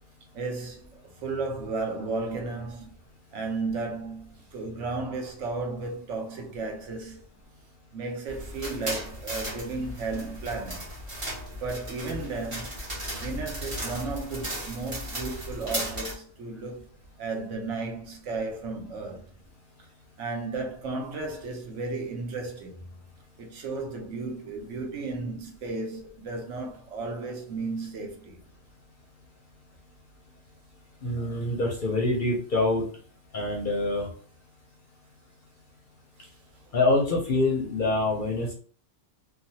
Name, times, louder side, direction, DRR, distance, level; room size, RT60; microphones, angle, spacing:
voice 1, 0.3-2.9 3.3-7.2 7.9-10.9 11.6-12.8 13.2-16.9 17.2-19.2 20.2-22.8 23.4-28.4 36.2-36.3, right 3 dB, 75° right, 1.0 m, -34 dB
sound 1, 8.3-16.1, equal, 25° right, 1.0 m, -36 dB
voice 2, 31.0-32.8 33.3-34.1 36.7-38.5, left 2 dB, 50° left, 0.6 m, -25 dB
3.1 x 2.2 x 2.7 m
omnidirectional pair, 1.3 m